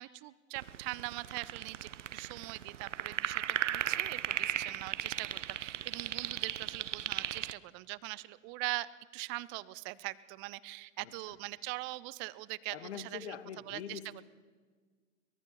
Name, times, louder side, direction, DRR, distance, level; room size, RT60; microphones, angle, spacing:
voice 1, 0.0-8.9 9.1-13.3 13.7-14.0, right 21 dB, 30° right, 19 dB, 0.7 m, -41 dB
sound 1, 0.6-7.5, right 10 dB, 70° right, 0.7 m, -36 dB
voice 2, 11.0-11.4 12.7-14.2, left 8 dB, 55° left, 9 dB, 2.1 m, -44 dB
23.5 x 20.5 x 5.7 m, 1.5 s
figure-of-eight pair, 100°, 38 cm